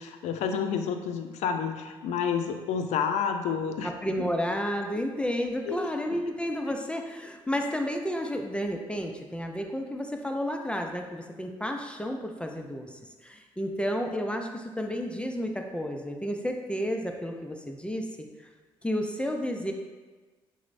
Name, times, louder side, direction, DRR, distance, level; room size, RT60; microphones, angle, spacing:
voice 1, 0.0-3.9 5.7-5.9, left 6 dB, 70° left, 6 dB, 0.4 m, -29 dB
voice 2, 3.8-18.3 18.8-19.7, equal, 10° left, 3 dB, 0.4 m, -31 dB
5.9 x 2.1 x 2.5 m, 1.3 s
supercardioid pair, 55°, 12 cm